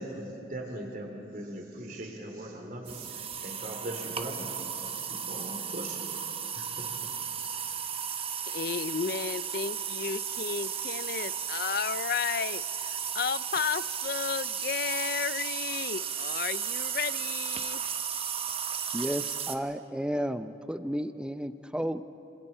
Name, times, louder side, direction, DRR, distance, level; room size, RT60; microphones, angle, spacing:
voice 1, 0.0-6.2 6.6-6.9, right 1 dB, 55° right, 1 dB, 3.3 m, -40 dB
sound 1, 2.9-19.6, right 7 dB, 35° right, 1.0 m, -34 dB
voice 2, 8.5-12.6 12.9-17.8, left 7 dB, 60° left, 17 dB, 0.4 m, -33 dB
voice 3, 18.9-22.0, equal, 5° right, 11 dB, 0.5 m, -32 dB
26.5 x 26.5 x 4.5 m, 3.0 s
head